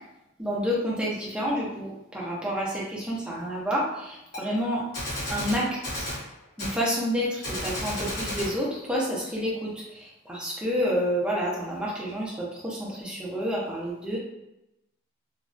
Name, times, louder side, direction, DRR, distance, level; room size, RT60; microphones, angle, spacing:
voice 1, 0.4-4.8 5.3-6.1 6.6-14.2, equal, 5° right, -5 dB, 0.6 m, -29 dB
Gunshot gunfire, 4.3-4.4 4.9-6.2 6.6-6.8 7.4-8.6, left 1 dB, 50° left, 1.2 m, -32 dB
3.0 x 2.3 x 2.5 m, 0.90 s
head